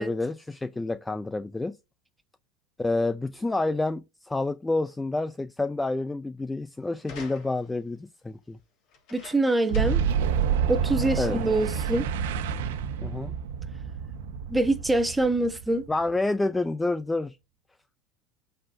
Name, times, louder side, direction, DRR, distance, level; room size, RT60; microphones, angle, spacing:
voice 1, 0.0-1.8 2.8-8.6 11.2-11.4 13.0-13.3 15.9-17.4, left 2 dB, 10° left, 0.3 m, -28 dB
sound 1, 7.0-7.8 8.9-10.1 10.5-10.6 11.0-11.4 12.2-12.3, left 5 dB, 50° left, 3.1 m, -47 dB
voice 2, 9.1-10.0 10.7-12.1 14.5-15.9, right 2 dB, 10° right, 1.1 m, -25 dB
Boom, 9.7-16.3, right 7 dB, 80° right, 1.1 m, -28 dB
13.0 x 4.3 x 2.6 m
supercardioid pair, 120°, 0 cm